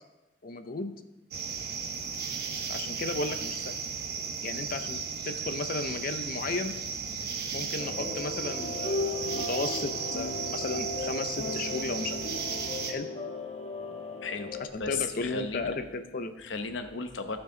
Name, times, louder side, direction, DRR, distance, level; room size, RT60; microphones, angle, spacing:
voice 1, 0.4-0.9 2.7-3.8 4.4-6.7 7.5-12.2 12.9-13.1 14.7-16.4, left 3 dB, 50° left, 9 dB, 0.6 m, -34 dB
sound 1, 1.3-12.9, right 6 dB, 55° right, 1.0 m, -35 dB
sound 2, 7.8-14.7, left 2 dB, 35° left, 1.2 m, -36 dB
voice 2, 14.2-14.5 14.8-15.8 16.4-17.4, left 4 dB, 80° left, 8 dB, 0.9 m, -34 dB
15.5 x 5.9 x 3.9 m, 1.0 s
head